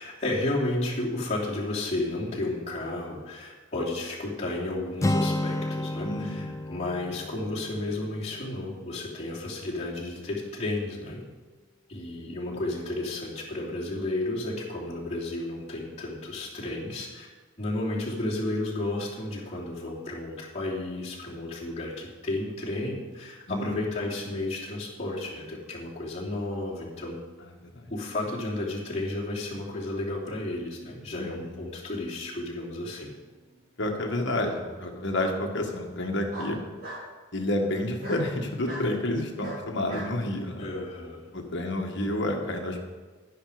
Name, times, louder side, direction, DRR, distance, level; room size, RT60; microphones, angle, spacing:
voice 1, 0.0-11.2 11.9-17.3 17.6-27.2 27.9-33.1 40.6-41.3, left 2 dB, 30° left, -6 dB, 3.0 m, -32 dB
Acoustic guitar, 5.0-8.9, left 1 dB, 15° left, 0.4 m, -31 dB
voice 2, 6.0-6.5 12.5-12.6 23.5-23.7 27.7-27.9 31.1-31.6 33.8-36.6 37.3-40.7 41.3-42.9, left 1 dB, 55° left, 2 dB, 1.7 m, -30 dB
Bark, 33.0-33.6 35.1-35.3 36.3-37.0 38.0-38.2 38.7-38.9 39.4-40.1, right 1 dB, 45° right, 4.5 m, -39 dB
11.5 x 10.0 x 5.0 m, 1.3 s
head